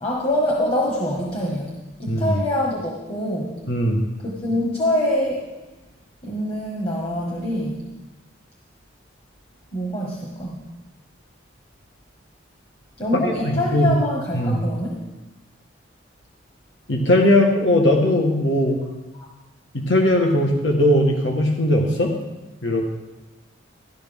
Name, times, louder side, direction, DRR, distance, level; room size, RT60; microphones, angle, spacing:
voice 1, 0.0-1.7 2.0-3.6 4.2-5.4 6.2-7.8 9.7-10.6 13.0-14.9 19.1-19.3, left 1 dB, 30° left, -3 dB, 1.7 m, -24 dB
voice 2, 2.1-2.4 3.7-4.0 13.2-13.9 14.3-14.6 16.9-18.8 19.7-22.1 22.6-22.9, left 1 dB, 65° left, 0 dB, 1.5 m, -19 dB
13.5 x 12.0 x 3.6 m, 1.1 s
head